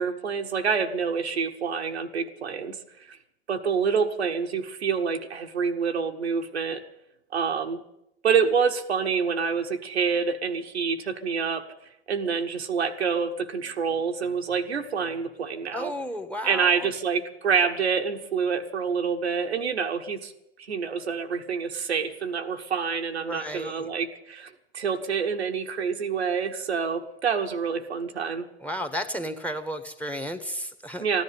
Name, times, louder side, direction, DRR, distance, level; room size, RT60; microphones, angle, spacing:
voice 1, 0.0-2.8 3.1-3.2 3.5-6.8 7.3-7.8 8.2-11.7 12.1-15.9 16.4-20.3 20.6-28.4 31.0-31.2, right 6 dB, 90° right, 4 dB, 1.2 m, -27 dB
voice 2, 15.7-16.9 23.2-23.9 28.6-31.0, equal, 5° left, 11 dB, 1.4 m, -33 dB
14.5 x 10.5 x 9.3 m, 0.84 s
hypercardioid pair, 80°, 32 cm